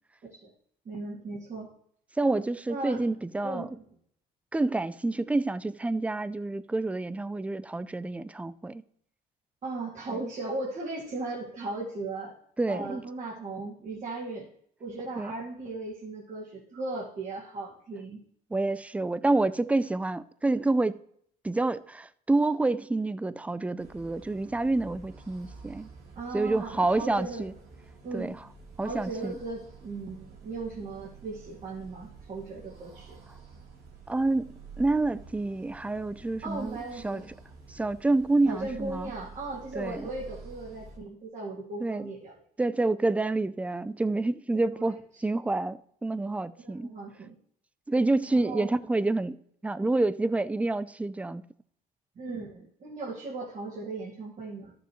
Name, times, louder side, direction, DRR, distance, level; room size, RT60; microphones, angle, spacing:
voice 1, 0.8-1.7 2.7-3.1 3.4-3.8 9.6-12.4 12.7-14.5 14.8-18.2 26.2-27.4 28.0-28.4 28.8-33.2 36.4-37.3 38.5-42.4 44.7-44.9 46.6-47.3 48.3-48.7 52.2-54.7, right 3 dB, 45° right, 2.3 m, -37 dB
voice 2, 2.2-3.7 4.5-8.8 10.1-10.2 12.6-13.0 15.2-15.3 18.5-21.0 21.4-25.9 26.3-27.5 28.1-28.4 28.8-29.4 34.1-36.8 37.0-37.2 37.7-39.1 39.7-40.1 41.8-42.1 42.6-46.9 47.9-49.4 49.6-51.4, right 2 dB, 10° right, 0.4 m, -28 dB
sound 1, 23.8-41.0, right 4 dB, 75° right, 2.9 m, -49 dB
12.5 x 6.8 x 3.1 m
cardioid pair, 110°, 17 cm